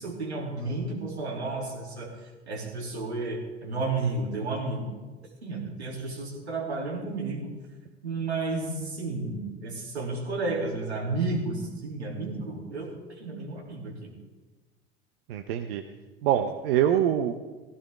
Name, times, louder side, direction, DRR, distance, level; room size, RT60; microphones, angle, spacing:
voice 1, 0.0-5.0 5.4-7.5 8.0-14.1, right 3 dB, 90° right, -1 dB, 3.2 m, -32 dB
voice 2, 15.3-15.8 16.2-17.3, right 10 dB, 65° right, 6 dB, 0.9 m, -24 dB
15.5 x 15.5 x 3.6 m, 1.2 s
hypercardioid pair, 75°, 32 cm